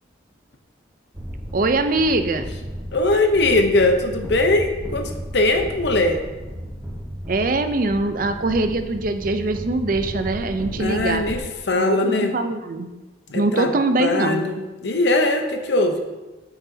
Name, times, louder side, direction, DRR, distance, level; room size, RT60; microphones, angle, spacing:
sound 1, 1.1-11.4, equal, 15° right, 0.9 m, -34 dB
voice 1, 1.5-2.5 7.3-11.2 11.7-12.9 13.3-14.5, right 2 dB, 50° right, 8 dB, 0.5 m, -22 dB
voice 2, 2.9-6.2 10.7-12.3 13.3-13.7 14.0-16.0, left 2 dB, 65° left, 5 dB, 0.8 m, -20 dB
9.0 x 5.9 x 2.7 m, 1.1 s
head